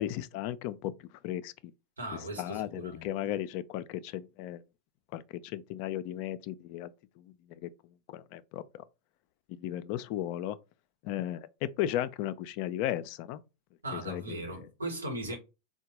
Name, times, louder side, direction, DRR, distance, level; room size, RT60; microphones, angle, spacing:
voice 1, 0.0-1.5 2.4-4.6 5.1-6.9 7.2-7.7 8.1-8.8 9.5-10.6 11.0-13.4 13.9-14.4, left 12 dB, 55° left, 0.3 m, -35 dB
voice 2, 2.0-3.1 13.8-15.4, right 1 dB, 90° right, 1.1 m, -38 dB
3.6 x 2.2 x 2.8 m
hypercardioid pair, 90°, 0 cm